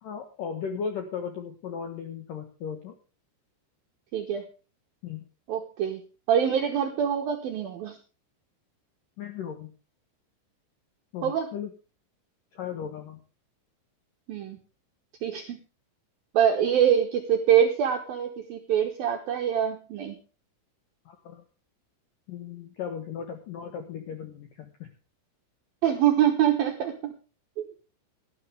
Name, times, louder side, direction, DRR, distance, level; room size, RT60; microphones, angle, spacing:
voice 1, 0.0-3.0 5.0-5.3 9.2-9.7 11.1-11.7 12.5-13.2 21.1-21.4 22.3-24.9, left 7 dB, 75° left, 6 dB, 2.0 m, -36 dB
voice 2, 4.1-4.4 5.5-6.0 6.3-8.0 11.2-11.5 14.3-14.6 15.2-15.6 16.3-20.2 25.8-27.1 27.6-27.7, right 9 dB, 75° right, 3 dB, 2.1 m, -24 dB
17.0 x 12.0 x 3.4 m, 0.34 s
omnidirectional pair, 5.9 m